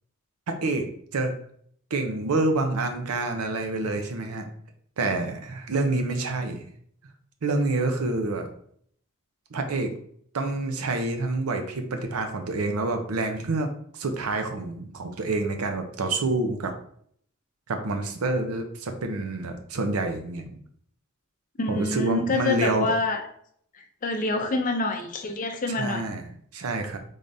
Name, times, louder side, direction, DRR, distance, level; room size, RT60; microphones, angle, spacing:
voice 1, 0.5-0.9 1.1-1.3 1.9-4.4 5.0-6.6 7.4-8.5 9.5-9.9 10.3-16.7 17.7-20.6 21.7-22.9 25.8-27.0, right 2 dB, 90° right, 5 dB, 0.6 m, -27 dB
voice 2, 21.6-23.2 23.7-26.2, left 2 dB, 40° left, 4 dB, 0.5 m, -27 dB
3.7 x 3.3 x 2.6 m, 0.63 s
head